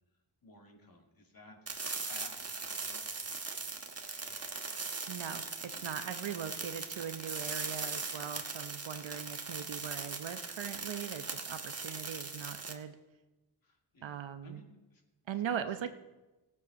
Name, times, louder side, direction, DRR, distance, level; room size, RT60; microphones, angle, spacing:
voice 1, 0.4-1.6 2.0-3.8 13.6-15.0 15.5-15.7, left 2 dB, 45° left, 1 dB, 2.6 m, -56 dB
sound 1, 1.7-12.7, right 4 dB, 30° right, 1.3 m, -40 dB
Engine, 4.0-7.5 8.0-8.1 8.2-8.3, left 3 dB, 85° left, 3.2 m, -63 dB
voice 2, 5.1-13.0 14.0-14.6 15.3-15.9, right 8 dB, 70° right, 9 dB, 0.9 m, -40 dB
16.0 x 8.4 x 5.3 m, 1.1 s
cardioid pair, 80°, 48 cm